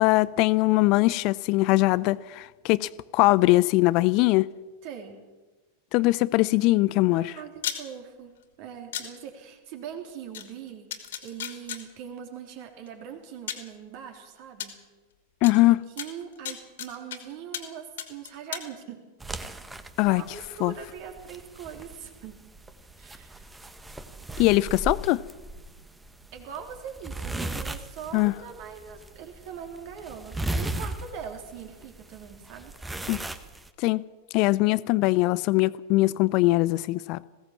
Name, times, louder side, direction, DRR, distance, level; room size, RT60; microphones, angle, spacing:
voice 1, 0.0-4.5 5.9-7.3 15.4-15.8 20.0-20.2 20.6-20.7 24.4-25.2 28.1-28.3 33.1-33.2 33.8-34.0 34.3-37.2, left 20 dB, 40° left, 0.6 m, -21 dB
voice 2, 4.8-5.2 7.1-14.8 15.7-19.0 20.0-22.4 23.0-23.5 26.3-32.7, right 8 dB, 45° right, 3.5 m, -41 dB
sound 1, 7.6-7.8 8.9-9.1 10.3-10.4 10.9-11.8 12.9-13.0 13.5-13.7 14.6-14.7 15.4-15.5 16.0-17.2 17.5-17.7 18.0-18.7, left 10 dB, 60° left, 2.7 m, -34 dB
sound 2, 19.2-33.7, right 2 dB, 10° right, 1.4 m, -37 dB
21.0 x 17.0 x 7.4 m
figure-of-eight pair, 90°, 0 cm